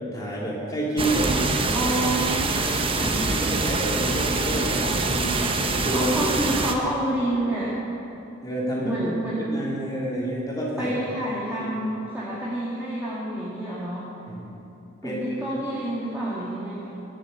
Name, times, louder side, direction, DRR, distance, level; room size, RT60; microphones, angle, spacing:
voice 1, 0.1-1.9 2.2-2.3 2.7-6.1 6.5-6.6 8.4-9.0 9.5-10.9 11.5-11.7 14.3-14.5 15.0-15.2, right 1 dB, 15° left, -5 dB, 3.3 m, -29 dB
sound 1, 1.0-6.7, right 3 dB, 25° right, 0.9 m, -25 dB
voice 2, 1.7-3.3 5.9-7.8 8.8-9.4 10.8-14.1 15.0-17.0, right 1 dB, 10° right, -8 dB, 2.0 m, -28 dB
21.5 x 7.3 x 8.2 m, 2.9 s
head